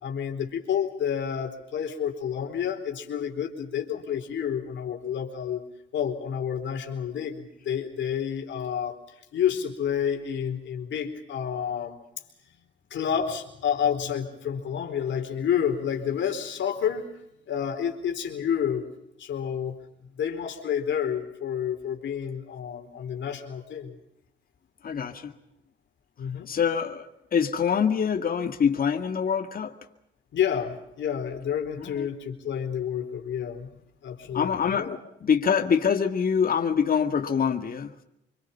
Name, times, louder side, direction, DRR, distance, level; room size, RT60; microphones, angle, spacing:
voice 1, 0.0-5.6 5.9-12.0 12.9-17.1 17.5-18.9 19.2-19.8 20.1-24.0 26.2-26.5 30.3-33.7 34.0-35.0, left 8 dB, 70° left, 4.3 m, -29 dB
voice 2, 24.8-25.3 26.5-29.7 31.8-32.1 34.3-37.9, left 7 dB, 45° left, 2.0 m, -25 dB
26.5 x 24.0 x 5.6 m
cardioid pair, 90°, 20 cm